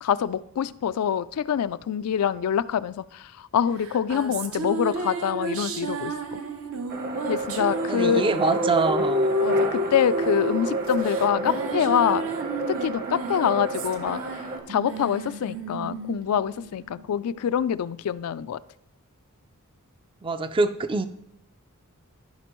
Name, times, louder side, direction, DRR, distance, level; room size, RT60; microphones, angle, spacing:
voice 1, 0.0-6.4 7.3-8.2 9.4-12.2 12.7-14.2 14.7-18.6, left 8 dB, 75° left, 15 dB, 0.3 m, -25 dB
sound 1, 3.8-17.5, right 1 dB, 65° right, 0.7 m, -31 dB
sound 2, 6.9-14.6, right 3 dB, 45° right, 1.0 m, -31 dB
voice 2, 7.9-9.3 20.2-21.1, right 3 dB, 25° right, 10 dB, 0.4 m, -24 dB
14.5 x 5.1 x 3.0 m, 0.82 s
head